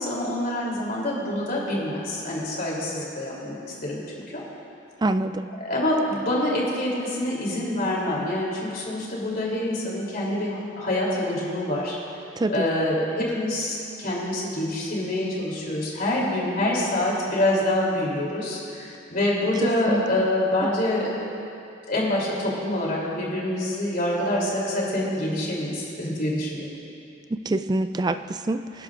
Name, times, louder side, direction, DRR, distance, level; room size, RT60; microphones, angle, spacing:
voice 1, 0.0-3.6 3.8-4.4 5.6-12.0 12.5-21.1 21.8-26.7, left 1 dB, 50° left, -4 dB, 3.2 m, -26 dB
voice 2, 5.0-5.5 12.4-12.7 19.6-20.0 27.3-28.8, right 2 dB, 20° right, 10 dB, 0.3 m, -25 dB
26.5 x 11.0 x 2.5 m, 2.6 s
head